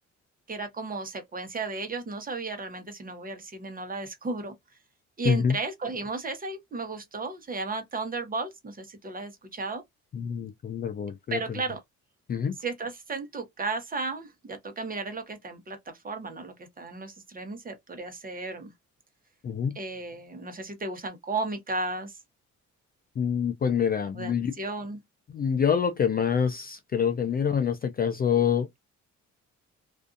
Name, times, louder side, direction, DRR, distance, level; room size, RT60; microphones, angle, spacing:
voice 1, 0.5-4.5 5.2-9.8 11.3-11.8 12.6-18.7 19.7-22.1 24.1-25.0, right 3 dB, 30° right, 0.9 m, -34 dB
voice 2, 5.2-5.6 10.1-11.6 12.3-12.6 19.4-19.8 23.2-24.5 25.3-28.8, left 7 dB, 30° left, 0.4 m, -26 dB
2.5 x 2.4 x 2.4 m
cardioid pair, 90°, 30 cm